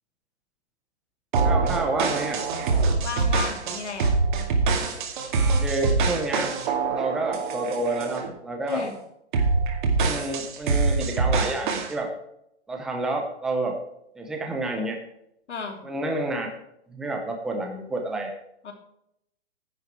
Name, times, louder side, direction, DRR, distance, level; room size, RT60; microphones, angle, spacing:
sound 1, 1.3-8.3 8.7-8.9 9.3-11.9, right 4 dB, 45° right, 2.3 m, -24 dB
voice 1, 1.4-2.4 5.6-6.5 6.9-8.8 10.0-12.1 12.7-13.7 14.2-15.0 15.8-16.5 16.9-18.3, right 2 dB, ahead, 2 dB, 0.7 m, -29 dB
voice 2, 3.0-4.2 8.7-9.0 15.5-15.8 18.6-18.7, left 6 dB, 80° left, 4 dB, 2.8 m, -33 dB
10.5 x 8.0 x 4.6 m, 0.76 s
hypercardioid pair, 160°, 34 cm